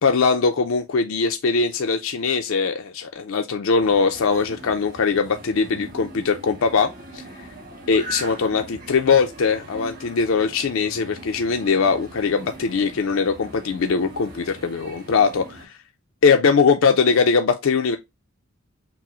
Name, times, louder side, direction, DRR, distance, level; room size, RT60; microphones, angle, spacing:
voice 1, 0.0-7.2 7.9-15.8 16.2-18.0, left 5 dB, 65° left, 0.4 m, -21 dB
sound 1, 3.8-15.7, right 1 dB, 40° right, 1.5 m, -40 dB
6.1 x 2.0 x 4.2 m
head